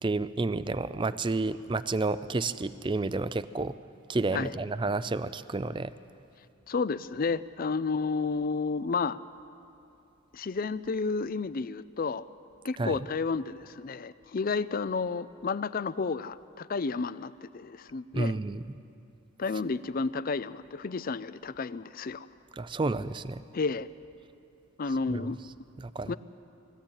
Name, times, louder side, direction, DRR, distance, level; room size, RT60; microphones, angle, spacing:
voice 1, 0.0-3.7 4.1-5.9 12.8-13.0 18.1-18.6 22.6-23.4 25.1-25.3 25.8-26.2, right 3 dB, 20° right, 14 dB, 0.4 m, -30 dB
voice 2, 6.7-9.2 10.3-12.3 12.6-18.3 19.4-22.3 23.5-23.9 24.8-25.4 26.0-26.2, left 4 dB, 40° left, 16 dB, 0.4 m, -31 dB
20.5 x 14.5 x 8.9 m, 2.7 s
head